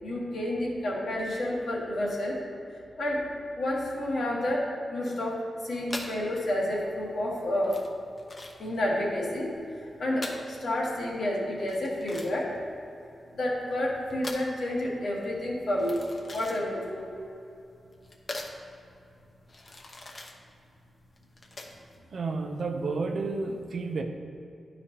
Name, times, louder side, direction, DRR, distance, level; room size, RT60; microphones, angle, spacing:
voice 1, 0.0-2.4 2.7-3.3 3.6-7.8 8.6-12.6 13.3-16.0 16.3-17.0, left 1 dB, 75° left, -3 dB, 1.6 m, -30 dB
sound 1, 5.9-22.0, left 2 dB, 40° left, 0.8 m, -43 dB
voice 2, 22.1-24.0, right 3 dB, 65° right, 4 dB, 0.7 m, -31 dB
11.5 x 4.9 x 2.9 m, 2.6 s
cardioid pair, 90°, 0 cm